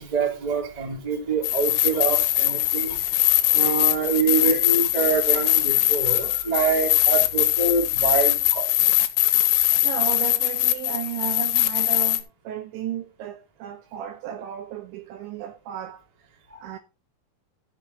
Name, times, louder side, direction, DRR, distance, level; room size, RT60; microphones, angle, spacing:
voice 1, 0.0-8.7 16.5-16.7, right 4 dB, 20° right, 1.0 m, -26 dB
sound 1, 1.4-12.2, left 15 dB, 80° left, 3.2 m, -21 dB
voice 2, 9.5-16.8, right 11 dB, 80° right, 2.7 m, -34 dB
12.0 x 7.1 x 3.8 m
omnidirectional pair, 5.9 m